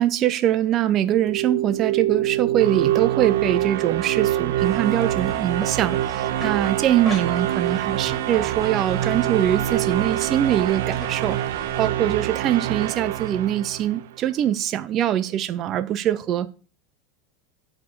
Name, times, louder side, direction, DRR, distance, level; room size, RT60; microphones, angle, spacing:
voice 1, 0.0-16.5, right 11 dB, 40° right, 0.6 m, -23 dB
sound 1, 1.0-14.1, right 13 dB, 75° right, 0.7 m, -25 dB
sound 2, 4.6-11.9, left 1 dB, 10° left, 3.2 m, -39 dB
9.3 x 3.5 x 6.8 m
supercardioid pair, 120°, 0 cm